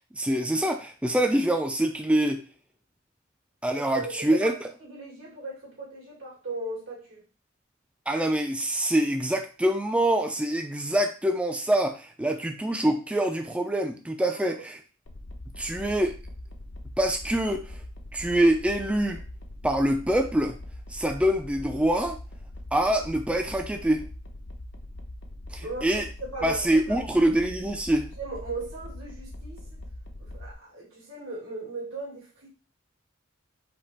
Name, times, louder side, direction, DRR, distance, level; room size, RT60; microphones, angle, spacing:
voice 1, 0.1-2.4 3.6-4.5 8.1-14.8 15.6-16.2 17.0-17.8 18.1-19.2 19.6-20.6 20.9-22.2 22.7-24.1 25.5-26.1 26.4-28.1, right 1 dB, 5° right, 0.3 m, -25 dB
voice 2, 3.9-7.2 14.3-14.6 25.6-25.9 26.2-27.0 28.2-29.6 30.2-32.5, right 2 dB, 90° right, 2.4 m, -38 dB
sound 1, 15.1-30.5, left 1 dB, 65° left, 0.7 m, -42 dB
4.4 x 2.9 x 4.3 m
head